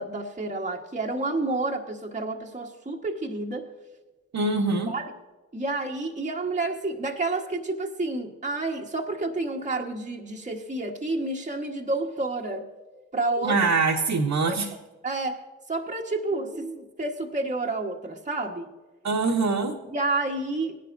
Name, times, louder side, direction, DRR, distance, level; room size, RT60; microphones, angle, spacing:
voice 1, 0.0-3.7 4.9-5.1 5.5-12.7 12.9-13.6 14.5-14.6 15.0-18.7 19.9-20.8, right 2 dB, 20° right, 0 dB, 1.4 m, -30 dB
voice 2, 4.3-4.9 13.4-14.7 19.0-19.8, right 3 dB, 55° right, -2 dB, 1.4 m, -24 dB
17.0 x 11.0 x 2.7 m, 1.2 s
supercardioid pair, 45°, 34 cm